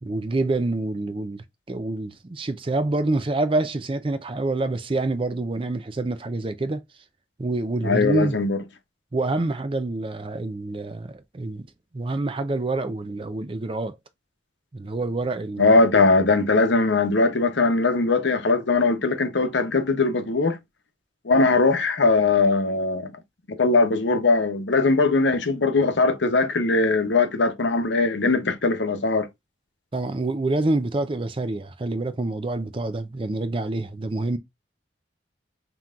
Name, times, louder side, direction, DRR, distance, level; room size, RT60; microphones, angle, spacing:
voice 1, 0.0-6.8 7.4-8.4 9.1-11.7 11.9-14.0 14.7-15.7 29.9-34.4, right 2 dB, 30° right, 0.5 m, -27 dB
voice 2, 7.8-8.6 15.6-20.6 21.2-23.1 23.6-29.3, left 3 dB, 85° left, 0.8 m, -20 dB
5.5 x 3.0 x 2.4 m
head